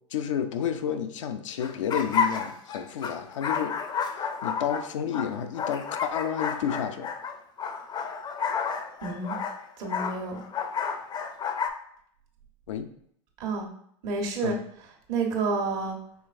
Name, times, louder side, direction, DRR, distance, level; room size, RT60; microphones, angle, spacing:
voice 1, 0.1-7.1 12.7-12.9 14.4-14.6, left 8 dB, 85° left, 8 dB, 0.5 m, -31 dB
sound 1, 1.6-11.7, left 6 dB, 30° left, 0.5 m, -31 dB
voice 2, 9.0-9.4 9.8-10.4 13.4-13.7 14.0-14.6 15.1-16.0, right 4 dB, 60° right, 1 dB, 1.2 m, -29 dB
5.0 x 3.3 x 2.5 m, 0.68 s
hypercardioid pair, 95°, 16 cm